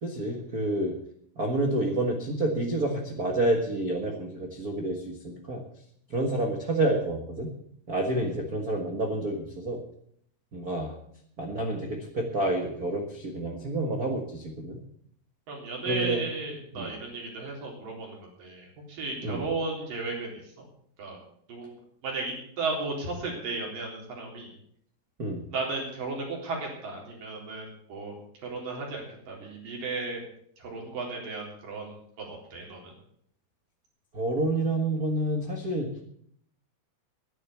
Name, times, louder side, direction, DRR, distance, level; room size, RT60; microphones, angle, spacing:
voice 1, 0.0-0.9 1.4-5.6 6.1-7.5 7.9-9.8 10.5-11.0 11.4-14.8 15.9-16.2 16.8-16.9 19.2-19.4 25.2-25.4 34.1-35.9, right 1 dB, 85° right, 2 dB, 0.8 m, -29 dB
voice 2, 15.5-20.7 21.0-21.2 21.5-21.8 22.0-24.5 25.5-30.2 30.6-32.9, right 3 dB, 60° right, -1 dB, 5.4 m, -35 dB
11.0 x 10.5 x 8.3 m, 0.68 s
omnidirectional pair, 4.6 m